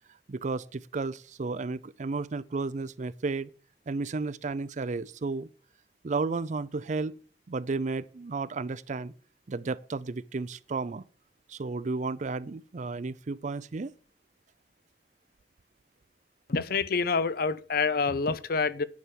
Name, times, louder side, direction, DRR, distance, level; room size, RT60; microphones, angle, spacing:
voice 1, 0.3-3.5 3.9-5.5 6.0-7.2 7.5-9.1 9.5-11.0 11.5-13.9, right 3 dB, 45° right, 0.5 m, -33 dB
voice 2, 16.5-18.8, left 4 dB, 55° left, 0.7 m, -27 dB
9.8 x 6.0 x 7.5 m
head